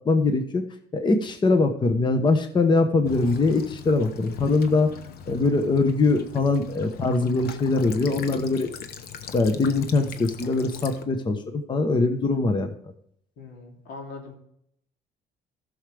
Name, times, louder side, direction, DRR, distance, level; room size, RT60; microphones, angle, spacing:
voice 1, 0.0-0.6 0.9-4.9 5.3-8.7 9.3-12.7, left 3 dB, 25° left, 7 dB, 1.0 m, -22 dB
Child speech kid speaking / Bird vocalization bird call bird song / Stream, 3.0-11.0, left 7 dB, 65° left, 1.0 m, -40 dB
voice 2, 13.4-14.4, left 3 dB, 85° left, 1 dB, 2.8 m, -41 dB
15.0 x 6.4 x 3.4 m, 0.71 s
cardioid pair, 110°, 17 cm